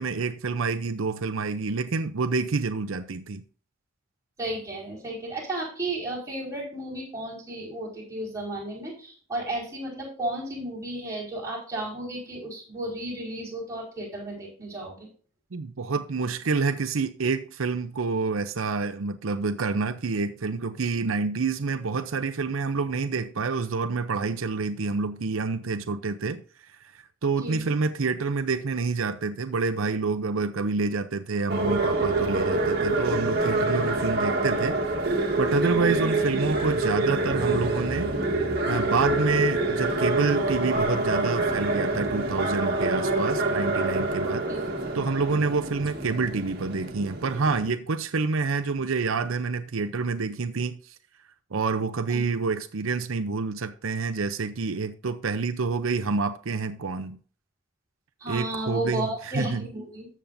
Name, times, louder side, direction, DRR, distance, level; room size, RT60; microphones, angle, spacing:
voice 1, 0.0-3.4 15.5-26.4 26.9-34.8 35.4-38.2 38.7-44.5 44.9-51.0 51.5-57.2 58.3-59.6, right 4 dB, 80° right, 0.6 m, -28 dB
voice 2, 4.4-15.1 27.4-27.6 35.9-36.1 43.2-43.3 44.5-44.6 52.1-52.3 58.2-60.1, right 1 dB, 15° right, 4.9 m, -33 dB
sound 1, 31.5-47.7, right 2 dB, 50° right, 1.9 m, -26 dB
14.0 x 7.4 x 2.6 m
head